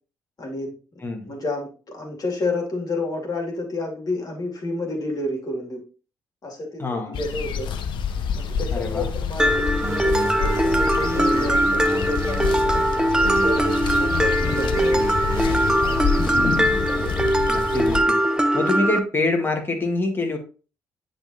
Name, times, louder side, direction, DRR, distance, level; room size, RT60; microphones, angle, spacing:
voice 1, 0.4-0.7 1.3-5.8 6.4-7.7 8.3-15.1 16.9-17.3, left 2 dB, 40° left, 0 dB, 2.5 m, -30 dB
voice 2, 1.0-1.3 6.8-7.2 8.7-9.1 16.3-16.9 17.5-18.2 18.5-20.4, left 2 dB, 25° left, 2 dB, 2.0 m, -26 dB
sound 1, 7.1-18.0, left 6 dB, 60° left, 0.7 m, -27 dB
Mallet percussion, 9.4-19.0, equal, 10° right, 0.7 m, -21 dB
sound 2, 9.8-12.8 13.2-16.3, right 2 dB, 30° right, 1.7 m, -33 dB
10.0 x 3.9 x 2.8 m, 0.36 s
figure-of-eight pair, 45°, 9 cm